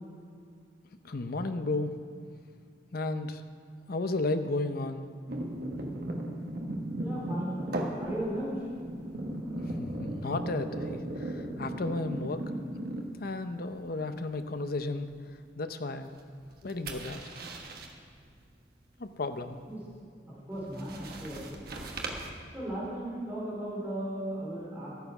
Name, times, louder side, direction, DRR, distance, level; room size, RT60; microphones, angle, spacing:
voice 1, 1.0-1.9 2.9-3.4 3.9-5.1 9.6-12.4 13.2-15.1 15.6-16.1 16.6-17.2 19.0-19.6, left 2 dB, 55° left, 9 dB, 0.7 m, -33 dB
sound 1, 5.3-13.4 13.8-14.1 16.4-17.9 20.6-22.3, right 1 dB, 55° right, 1.3 m, -37 dB
voice 2, 7.0-8.6 19.7-19.8 20.3-21.7 22.5-24.9, right 1 dB, 10° right, -8 dB, 4.0 m, -36 dB
13.5 x 9.3 x 5.9 m, 2.3 s
head